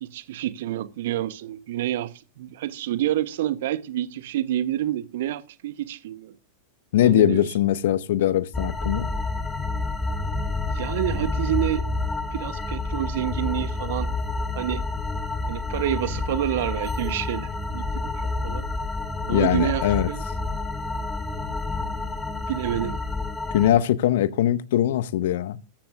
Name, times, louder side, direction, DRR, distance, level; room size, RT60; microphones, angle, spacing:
voice 1, 0.0-6.4 7.0-7.5 10.7-11.9 12.3-14.1 14.5-14.8 15.5-18.7 19.3-20.2 22.5-23.0, right 13 dB, 55° right, 0.9 m, -28 dB
voice 2, 6.9-9.1 19.3-20.1 23.5-25.6, left 12 dB, 55° left, 0.7 m, -21 dB
sound 1, 8.5-23.7, left 2 dB, 10° left, 1.8 m, -29 dB
15.0 x 13.5 x 2.5 m
figure-of-eight pair, 90°, 0 cm